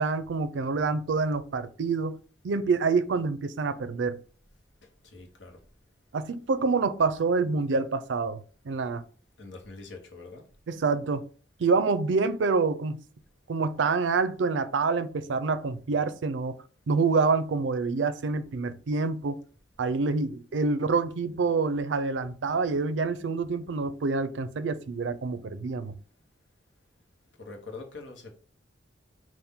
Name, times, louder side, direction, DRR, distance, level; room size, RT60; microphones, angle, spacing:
voice 1, 0.0-2.2 2.4-4.2 6.1-8.4 8.7-9.0 10.7-11.3 11.6-13.0 13.5-16.6 16.9-19.4 19.8-25.9, right 4 dB, 85° right, 0.4 m, -27 dB
voice 2, 5.0-5.6 9.4-10.4 27.4-28.3, left 3 dB, 85° left, 1.1 m, -44 dB
5.5 x 2.5 x 3.6 m
head